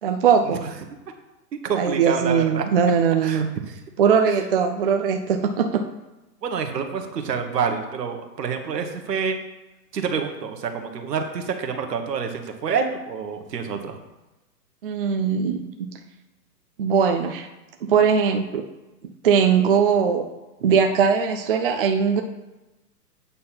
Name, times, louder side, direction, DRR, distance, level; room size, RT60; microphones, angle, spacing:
voice 1, 0.0-0.7 1.8-3.5 4.0-5.8 14.8-15.9 16.8-17.5 17.8-18.6 19.2-20.3 20.6-22.2, right 6 dB, 35° right, 4 dB, 0.5 m, -20 dB
voice 2, 1.6-2.6 3.2-3.7 4.3-4.4 6.4-9.4 9.9-14.0, right 6 dB, 75° right, 5 dB, 1.6 m, -27 dB
8.6 x 4.3 x 5.8 m, 1.0 s
hypercardioid pair, 150°, 49 cm